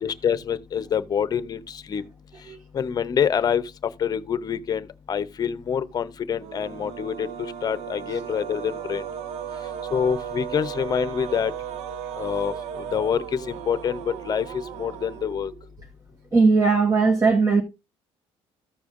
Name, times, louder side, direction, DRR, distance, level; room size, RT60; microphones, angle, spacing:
voice 1, 0.0-2.0 2.7-3.7 4.0-7.3 7.6-9.0 9.9-11.5 12.2-14.5 14.8-15.5, left 7 dB, 35° left, 0.8 m, -26 dB
sound 1, 6.4-15.7, right 9 dB, 85° right, 0.6 m, -36 dB
voice 2, 16.3-17.6, right 4 dB, 30° right, 1.1 m, -18 dB
14.0 x 6.9 x 2.5 m
cardioid pair, 130°, 11 cm